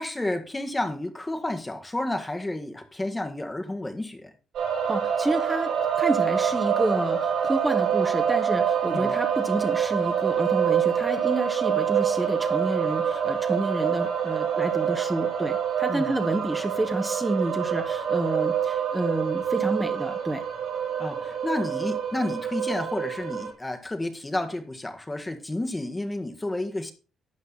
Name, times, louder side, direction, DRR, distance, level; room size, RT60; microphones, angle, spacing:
voice 1, 0.0-4.3 8.9-9.2 15.9-16.1 21.0-26.9, left 1 dB, 15° left, 1.6 m, -31 dB
sound 1, 4.5-23.5, right 8 dB, 80° right, 5.5 m, -26 dB
voice 2, 4.9-20.4, right 2 dB, 15° right, 1.4 m, -29 dB
12.0 x 8.0 x 4.1 m
cardioid pair, 90°, 0 cm